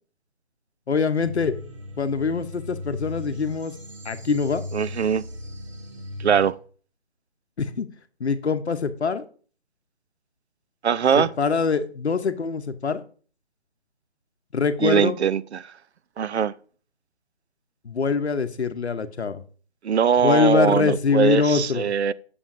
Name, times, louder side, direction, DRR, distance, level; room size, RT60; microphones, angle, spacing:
voice 1, 0.9-1.5 2.0-3.7 4.0-4.6 7.6-7.9 8.2-9.2 11.2-13.0 14.5-15.2 17.8-19.4 20.2-21.9, left 5 dB, 75° left, 0.8 m, -23 dB
sound 1, 1.2-6.5, left 2 dB, 30° right, 0.8 m, -37 dB
voice 2, 4.7-5.2 6.2-6.6 10.8-11.3 14.8-15.7 16.2-16.5 19.8-22.1, right 7 dB, 75° right, 0.5 m, -21 dB
8.8 x 6.9 x 2.5 m
figure-of-eight pair, 155°, 33 cm